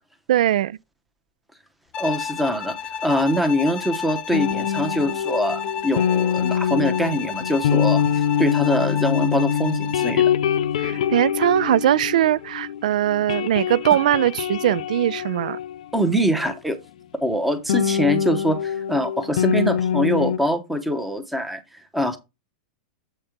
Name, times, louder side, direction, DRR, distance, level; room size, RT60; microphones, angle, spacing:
voice 1, 0.3-0.8 10.8-15.6, right 12 dB, 70° right, 0.3 m, -20 dB
Bowed string instrument, 1.9-10.3, left 7 dB, 20° left, 0.5 m, -32 dB
voice 2, 2.0-10.3 10.8-11.0 15.9-16.8 17.2-22.2, equal, 5° right, 0.8 m, -24 dB
sound 1, 4.3-12.8 13.1-16.5 17.7-20.4, left 8 dB, 70° left, 0.6 m, -24 dB
7.8 x 4.4 x 5.0 m
supercardioid pair, 170°, 4 cm